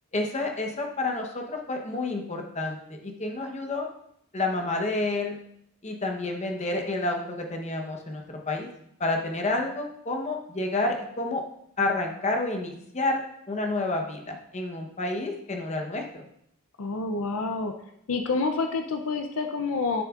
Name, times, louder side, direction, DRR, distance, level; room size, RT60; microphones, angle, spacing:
voice 1, 0.1-3.9 4.3-5.4 5.8-8.7 9.0-11.4 11.8-13.2 13.5-16.3, left 2 dB, 30° left, 2 dB, 0.9 m, -29 dB
voice 2, 16.8-17.7 18.1-20.0, left 4 dB, 70° left, 5 dB, 0.5 m, -28 dB
11.0 x 6.5 x 2.4 m, 0.72 s
head